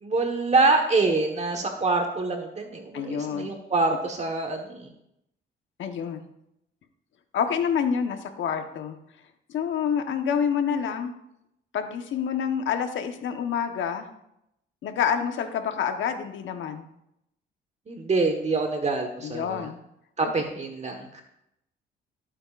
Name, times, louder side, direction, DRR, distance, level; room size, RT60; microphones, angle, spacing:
voice 1, 0.0-4.9 17.9-19.7 20.2-21.2, right 3 dB, 35° right, 4 dB, 1.4 m, -25 dB
voice 2, 2.9-3.5 5.8-6.2 7.3-9.0 9.5-11.1 11.7-14.1 14.8-16.9 19.2-19.8 20.2-20.3, left 7 dB, 75° left, 6 dB, 1.2 m, -27 dB
17.0 x 8.7 x 2.5 m, 0.80 s
cardioid pair, 90°, 20 cm